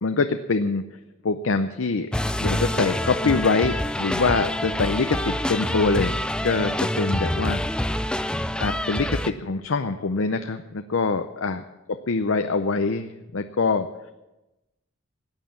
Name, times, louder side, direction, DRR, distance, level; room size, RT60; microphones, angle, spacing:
voice 1, 0.0-2.1 2.4-8.0 8.6-11.6 11.9-13.9, left 4 dB, 75° left, 8 dB, 0.7 m, -25 dB
sound 1, 2.1-9.3, left 1 dB, 5° left, 0.4 m, -26 dB
15.0 x 9.1 x 7.3 m, 1.0 s
head